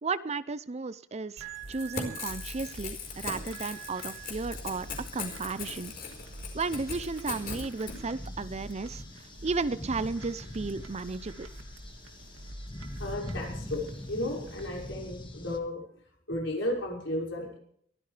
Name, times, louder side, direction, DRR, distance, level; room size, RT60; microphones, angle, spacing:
voice 1, 0.0-4.9 5.1-5.9 6.5-9.0 9.4-11.5, right 4 dB, 35° right, 15 dB, 0.6 m, -34 dB
sound 1, 1.4-14.9, right 2 dB, 85° right, 2.5 m, -46 dB
Crackle / Tearing, 1.6-8.0, left 5 dB, 50° left, 4.7 m, -39 dB
sound 2, 2.4-15.6, left 1 dB, 25° left, 1.7 m, -45 dB
voice 2, 13.0-15.8 16.3-17.6, left 1 dB, 70° left, -1 dB, 5.8 m, -34 dB
22.5 x 16.0 x 3.4 m, 0.65 s
head